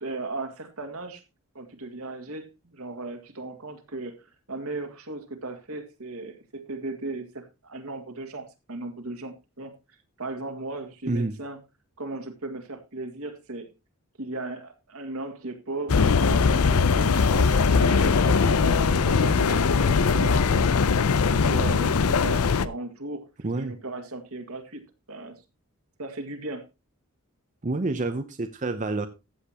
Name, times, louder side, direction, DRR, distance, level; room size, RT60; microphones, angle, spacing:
voice 1, 0.0-1.2 1.5-9.7 10.2-11.6 12.0-13.7 14.2-20.4 21.3-23.3 23.6-24.8 25.1-25.3 26.0-26.7, right 2 dB, 75° right, 5 dB, 2.0 m, -36 dB
sound 1, 15.9-22.7, left 5 dB, 80° left, 0.6 m, -21 dB
voice 2, 27.6-29.1, right 2 dB, 35° right, 8 dB, 0.7 m, -28 dB
15.0 x 8.1 x 2.9 m, 0.25 s
head